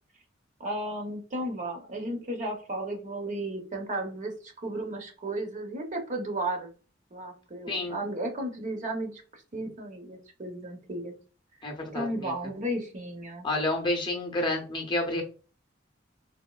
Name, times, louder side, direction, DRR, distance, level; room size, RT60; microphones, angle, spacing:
voice 1, 0.6-6.7 7.1-11.1 11.9-13.5, right 1 dB, 40° right, 3 dB, 0.7 m, -34 dB
voice 2, 7.7-8.0 11.6-12.5 13.4-15.2, left 2 dB, 25° left, 2 dB, 0.6 m, -30 dB
4.1 x 2.5 x 2.3 m, 0.37 s
head